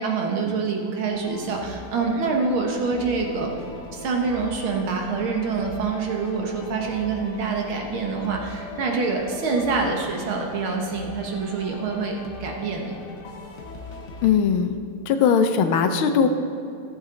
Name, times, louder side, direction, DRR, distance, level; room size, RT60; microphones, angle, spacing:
voice 1, 0.0-3.5 3.9-12.9, right 4 dB, 70° right, 1 dB, 2.0 m, -26 dB
sound 1, 1.1-14.3, left 2 dB, 50° left, 0.8 m, -41 dB
voice 2, 14.2-14.8 15.1-16.3, left 7 dB, 75° left, 7 dB, 1.5 m, -19 dB
14.5 x 7.3 x 3.8 m, 2.6 s
omnidirectional pair, 2.4 m